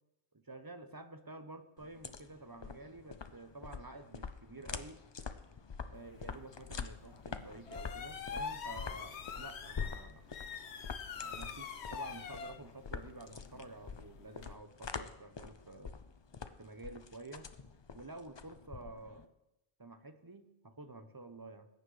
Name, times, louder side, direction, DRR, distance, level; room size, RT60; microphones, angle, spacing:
voice 1, 0.5-5.0 5.8-10.2 11.2-15.9 16.6-17.5 17.9-19.2 19.8-21.7, right 2 dB, 25° right, 8 dB, 0.7 m, -50 dB
sound 1, 1.8-19.3, left 5 dB, 40° left, 0.4 m, -45 dB
sound 2, 5.9-14.5, left 6 dB, 85° left, 1.0 m, -46 dB
20.0 x 9.3 x 3.3 m, 0.91 s
omnidirectional pair, 1.1 m